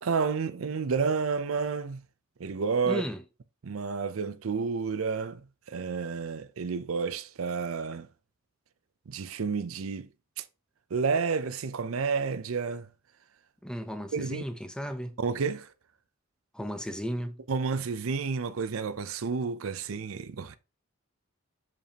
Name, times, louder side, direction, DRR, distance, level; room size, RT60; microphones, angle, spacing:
voice 1, 0.0-2.0 2.4-3.0 3.6-8.1 9.1-10.1 10.4-10.5 10.9-12.9 14.1-14.4 15.2-15.7 17.5-20.6, right 5 dB, 80° right, 0.5 m, -30 dB
voice 2, 2.8-3.2 13.6-15.2 16.5-17.4, equal, 5° left, 0.6 m, -35 dB
6.8 x 5.3 x 2.9 m
head